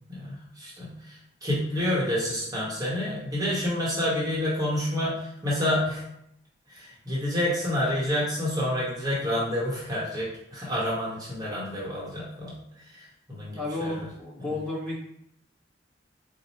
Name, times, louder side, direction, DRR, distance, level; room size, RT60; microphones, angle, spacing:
voice 1, 0.1-6.0 6.7-12.5 12.9-14.1, left 1 dB, 20° right, -6 dB, 0.9 m, -29 dB
voice 2, 13.6-15.0, left 2 dB, 5° left, -8 dB, 1.0 m, -32 dB
4.1 x 2.1 x 4.3 m, 0.75 s
head